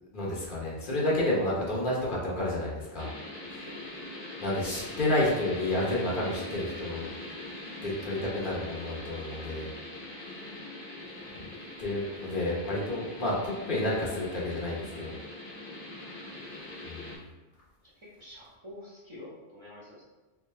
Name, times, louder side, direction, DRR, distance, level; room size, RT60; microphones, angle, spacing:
voice 1, 0.1-3.1 3.5-3.6 4.4-7.1 7.8-9.7 11.8-15.2 16.8-17.2, left 1 dB, 55° left, -5 dB, 1.0 m, -30 dB
sound 1, 3.0-17.2, left 1 dB, 70° left, 1.4 m, -42 dB
voice 2, 3.6-4.1 17.8-20.0, left 1 dB, 30° right, -7 dB, 0.8 m, -48 dB
3.4 x 2.8 x 3.2 m, 1.2 s
omnidirectional pair, 1.1 m